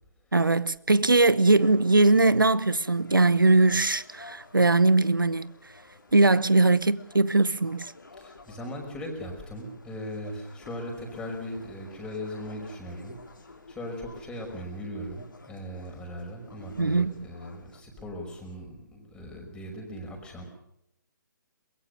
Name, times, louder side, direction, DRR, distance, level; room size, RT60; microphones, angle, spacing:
voice 1, 0.3-5.5 6.1-7.9 16.8-17.1, right 2 dB, 90° right, 0.9 m, -21 dB
sound 1, 1.6-17.8, left 3 dB, 80° left, 3.6 m, -52 dB
voice 2, 8.2-13.2 13.7-20.4, equal, 10° left, 5.4 m, -38 dB
23.0 x 21.5 x 6.7 m
figure-of-eight pair, 135°, 11 cm